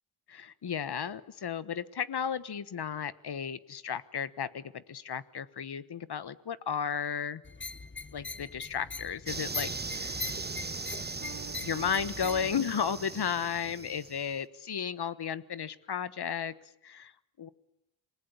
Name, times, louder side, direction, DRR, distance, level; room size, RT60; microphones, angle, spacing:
voice 1, 0.3-7.4 8.1-10.2 11.6-16.5 16.8-17.1 17.4-17.5, left 7 dB, 55° left, 16 dB, 1.3 m, -34 dB
sound 1, 7.4-12.6, left 4 dB, 25° left, 1.1 m, -41 dB
sound 2, 9.3-14.3, right 4 dB, 20° right, 1.2 m, -39 dB
Piano, 11.2-13.7, right 4 dB, 40° right, 4.0 m, -49 dB
27.0 x 20.0 x 9.9 m, 0.85 s
cardioid pair, 85°, 48 cm